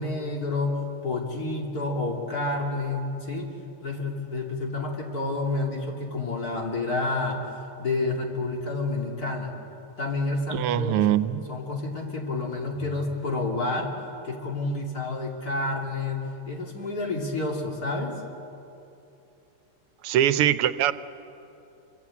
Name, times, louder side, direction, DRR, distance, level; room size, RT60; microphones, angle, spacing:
voice 1, 0.0-3.5 3.8-7.5 7.8-9.5 10.0-11.2 11.5-13.9 14.2-18.1, left 2 dB, 45° left, 0 dB, 3.3 m, -29 dB
voice 2, 10.5-11.5 20.0-20.9, right 11 dB, 90° right, 14 dB, 1.7 m, -22 dB
26.0 x 24.0 x 8.5 m, 2.8 s
omnidirectional pair, 2.4 m